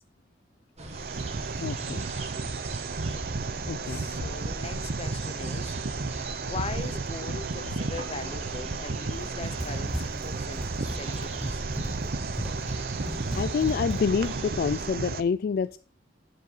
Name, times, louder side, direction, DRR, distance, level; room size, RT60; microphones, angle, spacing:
sound 1, 0.8-14.9, right 2 dB, 40° right, 1.8 m, -41 dB
sound 2, 0.9-15.2, right 4 dB, 55° right, 0.7 m, -33 dB
voice 1, 1.6-2.1 3.7-4.0 13.3-15.8, left 6 dB, 55° left, 0.3 m, -27 dB
voice 2, 3.9-5.7 6.4-11.6, left 3 dB, 35° left, 0.8 m, -40 dB
Run, 9.1-14.4, equal, ahead, 0.6 m, -37 dB
11.0 x 5.4 x 5.5 m
head